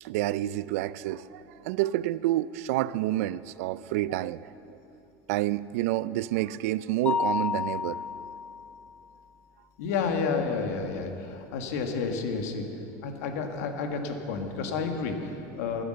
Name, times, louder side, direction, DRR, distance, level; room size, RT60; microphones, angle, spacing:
voice 1, 0.0-4.8 5.3-8.0, right 15 dB, 65° right, 0.4 m, -29 dB
Mallet percussion, 7.1-8.8, left 6 dB, 15° left, 0.3 m, -30 dB
voice 2, 9.8-12.7 13.0-15.8, left 5 dB, 70° left, 1.6 m, -30 dB
14.0 x 9.9 x 7.8 m
cardioid pair, 180°, 9 cm